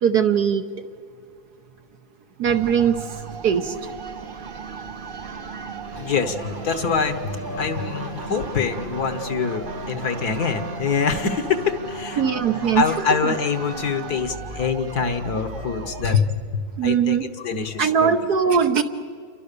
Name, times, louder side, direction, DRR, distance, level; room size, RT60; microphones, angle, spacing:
voice 1, 0.0-0.7 2.4-3.1 3.4-3.7 12.2-12.8 16.0-16.1 16.8-17.3 17.8-18.8, right 7 dB, 60° right, 7 dB, 1.3 m, -20 dB
sound 1, 2.4-16.2, right 4 dB, 45° right, 0.7 m, -35 dB
voice 2, 5.8-12.5 12.7-18.1, left 6 dB, 55° left, 9 dB, 1.7 m, -25 dB
28.5 x 23.5 x 6.8 m, 2.3 s
omnidirectional pair, 2.2 m